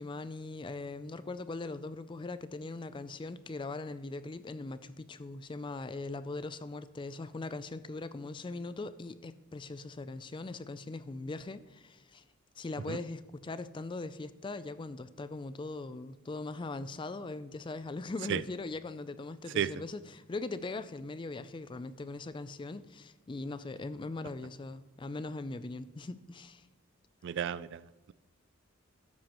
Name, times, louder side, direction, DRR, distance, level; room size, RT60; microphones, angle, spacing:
voice 1, 0.0-12.2 12.6-26.7, left 3 dB, 25° left, 14 dB, 0.3 m, -40 dB
voice 2, 27.2-28.1, right 8 dB, 60° right, 18 dB, 0.3 m, -33 dB
13.0 x 9.6 x 3.0 m, 1.2 s
head